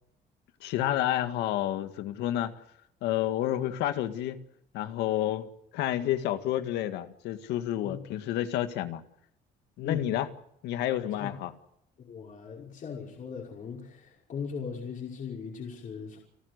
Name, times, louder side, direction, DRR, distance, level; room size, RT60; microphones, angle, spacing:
voice 1, 0.6-2.5 3.0-4.4 4.7-5.5 5.7-9.0 9.8-10.3 10.6-11.5, left 12 dB, 85° left, 10 dB, 1.9 m, -29 dB
voice 2, 12.0-16.2, left 6 dB, 50° left, -1 dB, 5.5 m, -39 dB
30.0 x 13.0 x 8.1 m, 0.80 s
cardioid pair, 110°, 17 cm